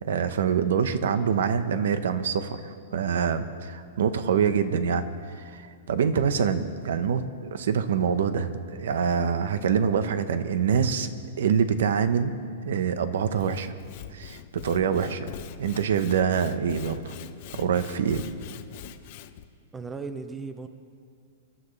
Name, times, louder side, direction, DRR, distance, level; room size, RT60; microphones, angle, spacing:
voice 1, 0.0-5.1 5.4-11.1 11.4-12.4 12.6-13.7 14.1-15.3 15.6-17.1 17.5-18.2, right 7 dB, 65° right, 11 dB, 1.0 m, -25 dB
Sawing / Wood, 13.2-19.5, left 10 dB, 35° left, 0.6 m, -42 dB
voice 2, 19.7-20.7, right 4 dB, 5° right, 8 dB, 0.4 m, -36 dB
29.5 x 12.0 x 3.3 m, 2.2 s
supercardioid pair, 180°, 0 cm